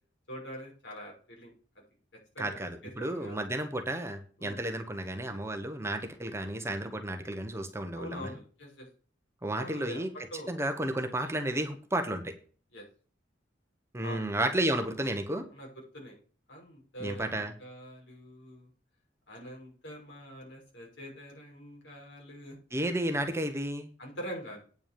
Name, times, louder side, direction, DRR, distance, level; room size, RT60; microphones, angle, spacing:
voice 1, 0.3-1.5 2.3-3.4 4.4-4.6 7.9-8.9 9.6-10.0 10.3-10.5 12.7-12.9 14.0-14.3 15.5-15.7 15.9-16.2 16.5-18.7 19.3-22.6 24.0-24.6, equal, 65° left, -1 dB, 6.1 m, -44 dB
voice 2, 2.4-8.4 9.4-10.1 10.5-12.3 13.9-15.5 17.0-17.5 22.7-23.9, right 1 dB, 15° right, 6 dB, 1.1 m, -32 dB
9.1 x 6.0 x 6.9 m, 0.40 s
head